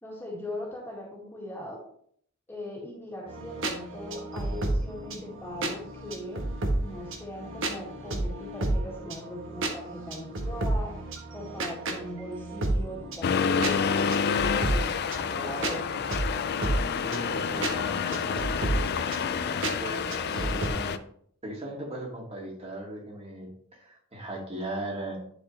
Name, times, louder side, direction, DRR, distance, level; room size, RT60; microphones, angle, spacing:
voice 1, 0.0-1.8 2.5-6.4 6.8-11.0 11.3-16.0, left 1 dB, 10° left, -4 dB, 1.9 m, -39 dB
sound 1, 3.3-20.7, right 2 dB, 60° right, 1.2 m, -32 dB
Accelerating revving vroom, 13.2-21.0, left 6 dB, 50° left, 0.4 m, -28 dB
voice 2, 17.0-19.0 19.5-21.0 21.4-25.2, right 1 dB, 30° right, -2 dB, 2.2 m, -38 dB
11.0 x 4.3 x 3.1 m, 0.63 s
head